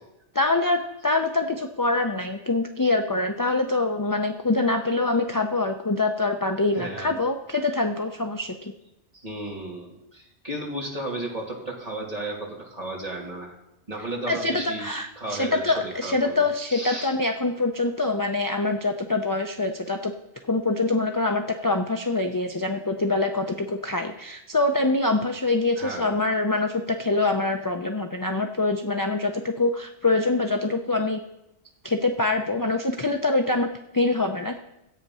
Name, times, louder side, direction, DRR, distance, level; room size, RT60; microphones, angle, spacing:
voice 1, 0.3-8.7 14.3-20.1 20.4-31.2 31.8-34.6, left 2 dB, 25° left, 5 dB, 0.5 m, -25 dB
voice 2, 6.7-7.1 9.1-13.5 13.9-14.8 15.2-17.1 25.8-26.2, right 1 dB, 35° right, -2 dB, 2.6 m, -34 dB
13.0 x 8.7 x 5.5 m, 0.90 s
omnidirectional pair, 1.2 m